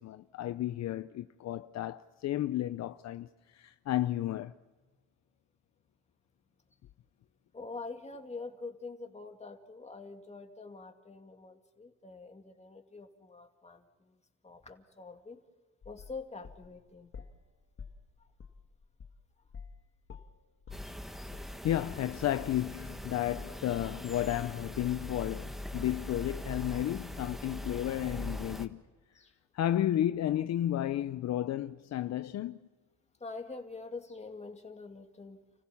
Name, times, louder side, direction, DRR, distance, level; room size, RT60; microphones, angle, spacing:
voice 1, 0.0-4.5 21.6-28.8 29.5-32.6, left 12 dB, 60° left, 0.6 m, -32 dB
voice 2, 7.5-15.4 15.8-17.1 18.2-18.3 29.1-29.4 33.2-35.4, left 3 dB, 20° left, 2.4 m, -45 dB
sound 1, 15.8-17.4 17.8-19.8 20.1-21.6 21.9-22.0, left 6 dB, 45° left, 1.6 m, -49 dB
sound 2, 20.7-28.7, left 1 dB, ahead, 1.4 m, -41 dB
30.0 x 15.5 x 7.1 m
cardioid pair, 90°, 30 cm